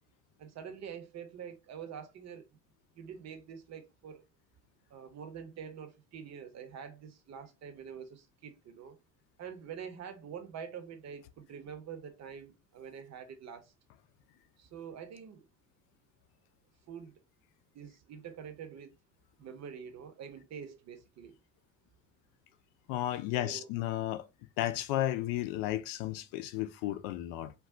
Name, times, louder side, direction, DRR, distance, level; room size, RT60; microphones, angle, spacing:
voice 1, 0.4-2.5 2.9-4.2 4.9-9.0 9.4-13.7 14.6-15.4 16.9-17.2 17.7-18.9 19.4-21.4 23.3-23.7, right 7 dB, 45° right, 0.8 m, -46 dB
voice 2, 22.9-24.3 24.6-27.5, left 14 dB, 65° left, 0.5 m, -33 dB
2.3 x 2.3 x 3.6 m
hypercardioid pair, 65°, 37 cm